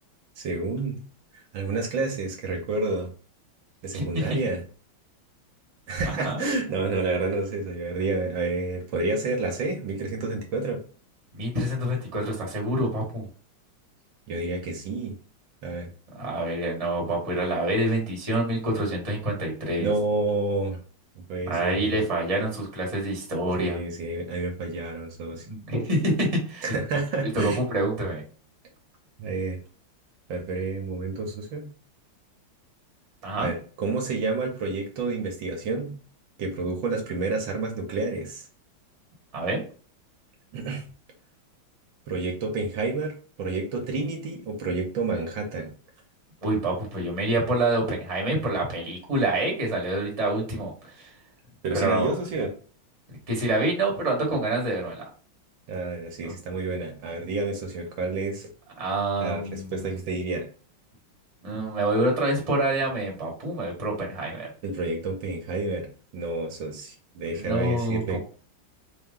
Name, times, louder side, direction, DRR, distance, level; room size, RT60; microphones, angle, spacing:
voice 1, 0.4-1.0 1.3-3.1 3.8-4.6 5.9-10.8 14.3-15.1 15.6-15.9 19.8-20.8 21.3-22.0 23.6-25.5 26.6-27.6 29.2-29.6 30.3-31.7 33.4-36.0 36.4-38.4 40.5-40.8 42.1-45.7 51.6-52.5 55.7-58.5 59.2-60.5 64.6-68.2, right 3 dB, 75° right, 2 dB, 1.5 m, -29 dB
voice 2, 3.9-4.4 6.0-6.4 11.3-13.2 16.1-19.9 21.5-23.8 25.5-26.7 27.3-28.2 33.2-33.5 39.3-39.6 46.4-51.1 51.7-52.1 53.3-55.0 56.2-56.3 58.8-60.0 61.4-64.5 67.3-68.2, right 1 dB, 20° right, -2 dB, 1.1 m, -27 dB
4.3 x 2.2 x 3.7 m, 0.40 s
omnidirectional pair, 2.2 m